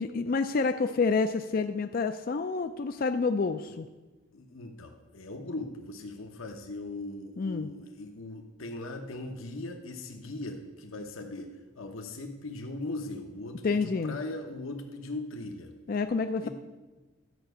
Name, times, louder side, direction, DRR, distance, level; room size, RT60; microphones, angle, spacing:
voice 1, 0.0-3.9 7.4-7.7 13.6-14.2 15.9-16.5, left 4 dB, 45° left, 8 dB, 0.4 m, -28 dB
voice 2, 4.3-15.7 16.4-16.5, left 2 dB, 75° left, 4 dB, 0.9 m, -39 dB
11.5 x 5.9 x 8.0 m, 1.2 s
head